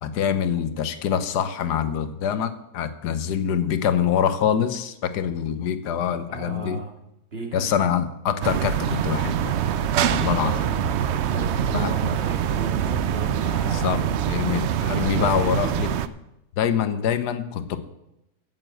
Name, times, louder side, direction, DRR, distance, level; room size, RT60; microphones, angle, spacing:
voice 1, 0.0-6.8 7.5-9.6 10.1-10.8 11.7-11.9 13.7-15.9 16.6-17.8, left 8 dB, 90° left, 10 dB, 1.4 m, -25 dB
voice 2, 6.3-6.9 7.3-7.7 10.1-10.7 11.2-14.0 15.0-15.5, right 2 dB, 40° right, 1 dB, 2.3 m, -34 dB
sound 1, 8.4-16.1, right 9 dB, 75° right, 0.6 m, -24 dB
8.9 x 8.2 x 7.7 m, 0.87 s
omnidirectional pair, 1.7 m